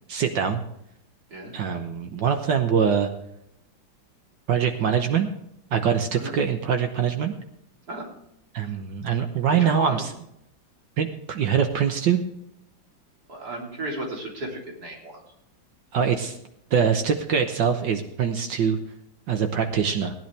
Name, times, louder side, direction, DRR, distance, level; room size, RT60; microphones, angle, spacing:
voice 1, 0.1-0.6 1.5-3.1 4.5-5.3 5.7-7.3 8.5-10.1 11.0-12.2 15.9-16.4 16.7-18.8 19.3-20.1, right 7 dB, 70° right, 6 dB, 1.6 m, -23 dB
voice 2, 9.5-10.0 13.3-15.2, right 1 dB, 50° right, -2 dB, 3.9 m, -34 dB
18.5 x 10.5 x 3.4 m, 0.75 s
omnidirectional pair, 2.1 m